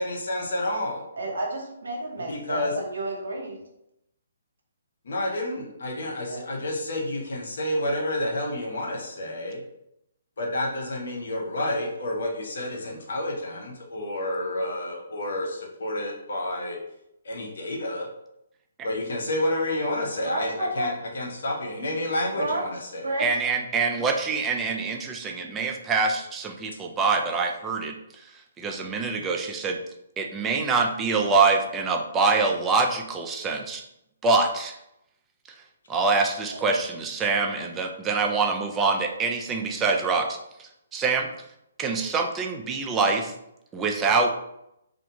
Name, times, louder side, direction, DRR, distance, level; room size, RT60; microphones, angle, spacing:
voice 1, 0.0-1.0 2.3-2.7 5.0-9.6 10.4-16.8 17.2-18.1 18.8-23.1, left 1 dB, 65° left, 0 dB, 0.8 m, -29 dB
voice 2, 1.2-3.6 6.0-6.4 20.1-20.9 21.8-21.9 22.4-22.7 23.0-23.3 36.5-36.6, right 1 dB, 70° right, 0 dB, 0.8 m, -31 dB
voice 3, 23.2-27.9 28.6-29.8 30.2-33.8 34.2-34.7 35.9-41.3 41.8-43.3 43.7-44.3, right 4 dB, 15° right, 2 dB, 0.3 m, -25 dB
2.4 x 2.2 x 2.8 m, 0.81 s
figure-of-eight pair, 135°, 0 cm